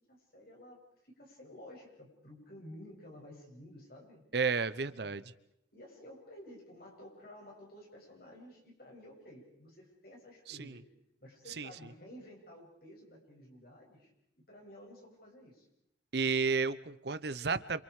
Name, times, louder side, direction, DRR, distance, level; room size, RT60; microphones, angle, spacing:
voice 1, 0.1-4.2 4.9-5.2 5.7-10.8 11.2-14.1 14.5-15.7, left 1 dB, 50° left, -1 dB, 7.8 m, -53 dB
voice 2, 4.3-5.2 10.5-10.8 11.6-11.7 16.1-17.8, right 5 dB, 60° right, 15 dB, 0.8 m, -32 dB
28.0 x 27.5 x 5.0 m, 0.79 s
head